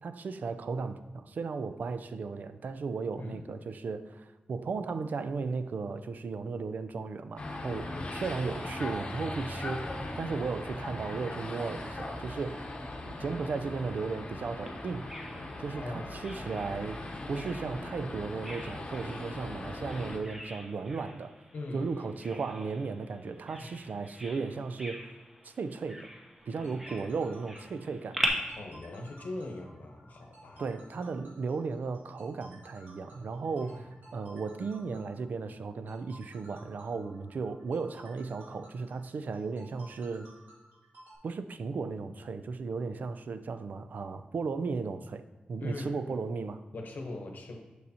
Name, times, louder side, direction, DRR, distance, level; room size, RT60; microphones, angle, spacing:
voice 1, 0.0-12.7 13.1-15.1 15.6-17.0 17.3-21.4 21.7-25.1 25.4-26.1 26.5-28.2 30.6-40.3 41.2-45.2 45.5-46.6, right 4 dB, 65° right, 11 dB, 0.4 m, -35 dB
sound 1, 7.4-20.2, left 2 dB, 35° left, 0.8 m, -39 dB
Bird vocalization bird call bird song, 14.7-28.3, equal, 10° right, 0.8 m, -42 dB
voice 2, 15.7-16.3 21.5-22.1 28.6-30.7 33.6-33.8 45.6-46.1 46.7-47.6, left 2 dB, 75° left, 2 dB, 0.9 m, -41 dB
sound 2, 26.4-41.1, right 1 dB, 90° right, 1.7 m, -55 dB
6.7 x 6.2 x 2.8 m, 1.2 s
wide cardioid pair, 155°, 3 cm